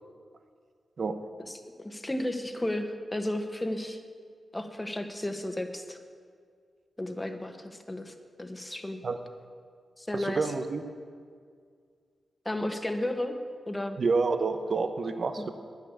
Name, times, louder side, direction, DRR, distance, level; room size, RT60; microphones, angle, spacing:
voice 1, 1.4-4.0 4.5-6.0 7.0-9.0 10.0-10.5 12.4-13.4 13.7-14.0 15.4-15.5, left 1 dB, 15° left, 6 dB, 1.3 m, -33 dB
voice 2, 10.1-10.8 14.0-15.5, right 4 dB, 55° right, 8 dB, 0.8 m, -28 dB
10.5 x 9.6 x 8.4 m, 2.1 s
cardioid pair, 80°, 0 cm